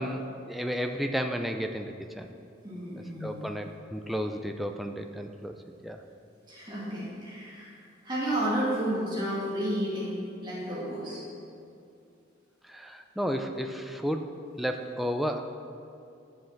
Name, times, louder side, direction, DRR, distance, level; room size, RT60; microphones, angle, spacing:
voice 1, 0.0-2.3 3.2-5.6 5.8-6.0 12.7-15.4, equal, ahead, 4 dB, 0.4 m, -32 dB
voice 2, 2.6-3.5 6.5-11.3, right 1 dB, 25° right, -7 dB, 2.4 m, -32 dB
10.5 x 7.7 x 5.9 m, 2.5 s
head